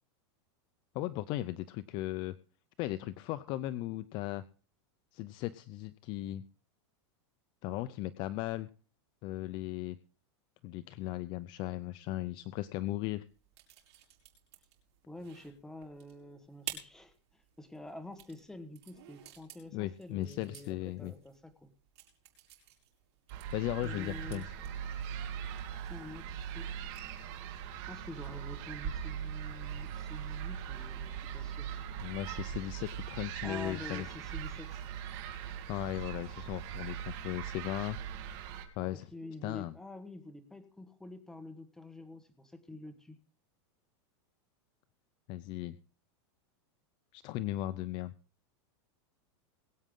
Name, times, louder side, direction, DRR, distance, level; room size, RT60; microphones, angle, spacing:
voice 1, 0.9-2.4 2.8-4.4 5.1-6.4 7.6-8.7 9.2-10.0 10.6-13.2 19.7-21.1 23.5-24.5 32.0-34.1 35.7-38.0 38.8-39.1 39.4-39.7 45.3-45.8 47.1-48.1, left 15 dB, 30° left, 14 dB, 0.5 m, -37 dB
sound 1, 13.3-27.2, right 12 dB, 65° right, 5.3 m, -52 dB
voice 2, 15.1-21.7 23.8-24.5 25.2-25.4 25.7-26.7 27.7-31.8 33.4-34.8 39.1-43.2, left 1 dB, 5° left, 7 dB, 1.4 m, -48 dB
sound 2, 23.3-38.7, right 9 dB, 40° right, 2.6 m, -40 dB
21.5 x 8.7 x 3.8 m, 0.37 s
supercardioid pair, 165°, 15 cm